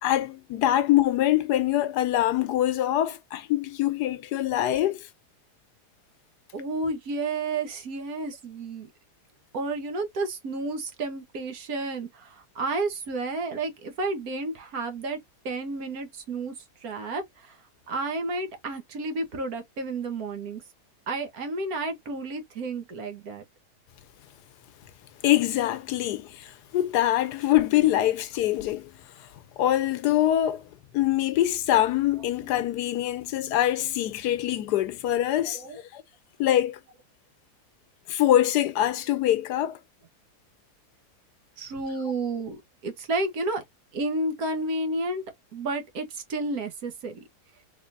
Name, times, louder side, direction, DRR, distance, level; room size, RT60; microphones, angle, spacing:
voice 1, 0.0-5.0 25.2-28.9 29.6-30.6 30.9-35.6 35.9-36.0 36.4-36.8 38.1-39.8, left 13 dB, 85° left, 1.2 m, -24 dB
voice 2, 6.5-8.9 9.5-15.2 15.4-16.5 16.8-17.6 17.9-20.6 21.1-23.4 32.4-32.5 35.5-35.8 41.6-42.6 42.8-43.6 43.9-45.2 45.5-47.2, right 2 dB, 65° right, 1.5 m, -31 dB
3.7 x 3.2 x 2.6 m
omnidirectional pair, 1.7 m